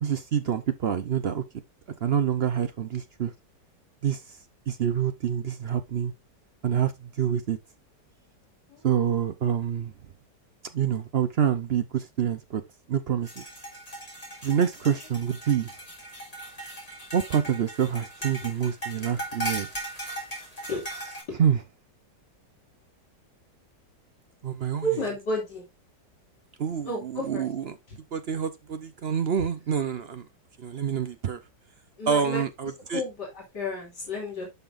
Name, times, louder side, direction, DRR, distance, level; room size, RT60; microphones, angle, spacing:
voice 1, 0.0-1.4 2.0-3.3 4.0-4.2 4.7-6.1 6.6-7.6 8.8-9.9 10.7-12.6 12.9-13.4 14.4-15.7 17.1-19.7 21.4-21.6 24.4-24.9 26.6-27.8 28.1-30.3 30.6-31.4 32.1-33.0, right 8 dB, 60° right, 0.6 m, -27 dB
sound 1, 13.2-21.2, right 1 dB, 20° left, 3.6 m, -38 dB
voice 2, 24.8-25.6 26.9-27.4 32.0-32.4 32.9-34.5, equal, 70° left, 3.4 m, -31 dB
11.0 x 5.9 x 2.5 m
omnidirectional pair, 1.9 m